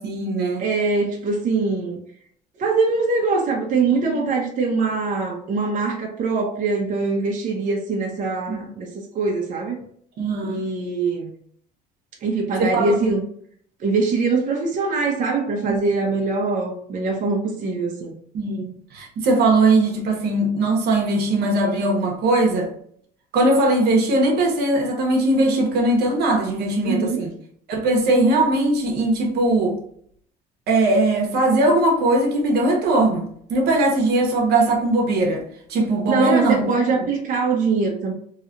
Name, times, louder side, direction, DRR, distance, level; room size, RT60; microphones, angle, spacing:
voice 1, 0.0-0.7 3.9-4.3 8.5-8.7 10.2-10.7 12.6-13.1 15.7-16.0 18.3-22.7 23.3-27.3 27.7-29.8 30.7-35.4 35.7-37.0, right 2 dB, 75° right, 0.9 m, -20 dB
voice 2, 0.6-2.0 2.6-9.8 10.4-11.3 12.2-13.2 13.8-18.1 26.8-27.2 36.1-38.1, right 4 dB, 50° right, 0.8 m, -23 dB
3.1 x 2.8 x 2.5 m
cardioid pair, 110°, 17 cm